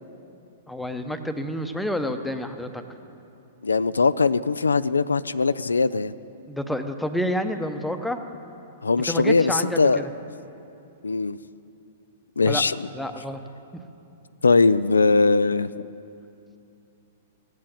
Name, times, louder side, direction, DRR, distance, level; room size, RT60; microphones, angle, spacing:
voice 1, 0.7-2.8 6.5-8.2 9.1-10.1 12.5-12.6 12.9-13.4, equal, 5° left, 7 dB, 0.9 m, -29 dB
voice 2, 3.6-6.1 8.8-10.1 11.0-11.4 12.4-12.9 14.4-15.9, left 4 dB, 85° left, 16 dB, 0.3 m, -20 dB
16.0 x 7.7 x 8.7 m, 2.7 s
hypercardioid pair, 110°, 0 cm